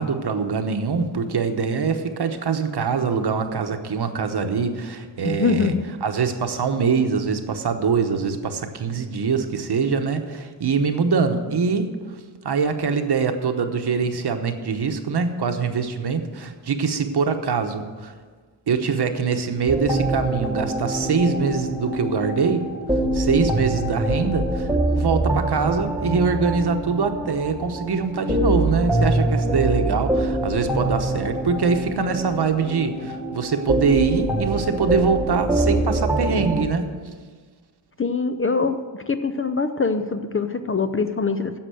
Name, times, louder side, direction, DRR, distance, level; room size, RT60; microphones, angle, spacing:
voice 1, 0.0-5.7 6.0-11.9 12.4-18.1 18.7-22.7 23.1-24.7 24.9-36.9, right 5 dB, 60° right, 7 dB, 1.0 m, -23 dB
voice 2, 5.2-5.9 38.0-41.5, left 4 dB, 30° left, 9 dB, 0.5 m, -23 dB
sound 1, 19.7-36.7, right 1 dB, 5° right, 1.0 m, -24 dB
10.0 x 7.6 x 7.7 m, 1.5 s
wide cardioid pair, 170°, 44 cm